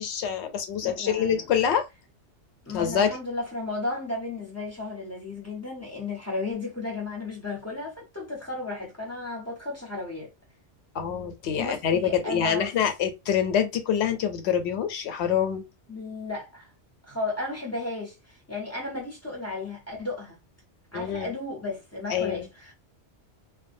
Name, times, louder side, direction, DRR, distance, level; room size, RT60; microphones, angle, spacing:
voice 1, 0.0-1.9 2.7-3.2 10.9-15.6 20.9-21.3 22.1-22.5, left 8 dB, 70° left, 0.9 m, -26 dB
voice 2, 0.8-1.4 2.7-10.3 11.5-12.7 15.9-16.7 17.1-20.4 20.9-22.7, left 2 dB, 15° left, 0.6 m, -34 dB
2.3 x 2.1 x 2.5 m
omnidirectional pair, 1.2 m